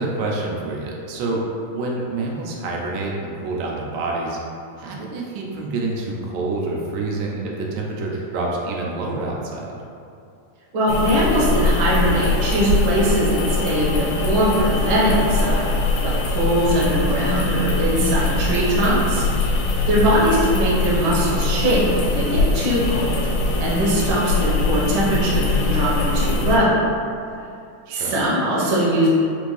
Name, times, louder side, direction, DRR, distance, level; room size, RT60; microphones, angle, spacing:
voice 1, 0.0-1.4 1.7-4.4 4.8-9.7 19.9-20.2 27.9-28.1, right 2 dB, 90° right, -2 dB, 2.2 m, -27 dB
voice 2, 10.7-15.7 16.0-19.5 19.9-26.8 27.9-29.1, equal, 70° right, -7 dB, 1.2 m, -21 dB
sound 1, 10.9-26.6, left 2 dB, 80° left, 1.6 m, -22 dB
5.3 x 2.5 x 3.1 m, 2.5 s
omnidirectional pair, 3.6 m